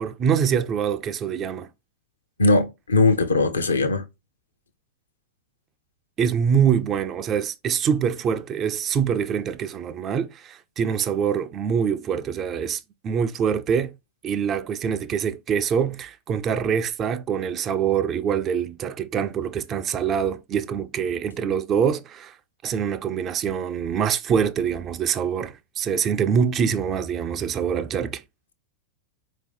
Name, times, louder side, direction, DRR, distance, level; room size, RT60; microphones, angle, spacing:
voice 1, 0.0-1.7 6.2-13.9 14.2-22.4 22.6-28.2, right 7 dB, 30° right, 0.4 m, -24 dB
voice 2, 2.4-4.0, left 3 dB, 75° left, 0.7 m, -19 dB
4.6 x 2.8 x 3.4 m
figure-of-eight pair, 90°, 0 cm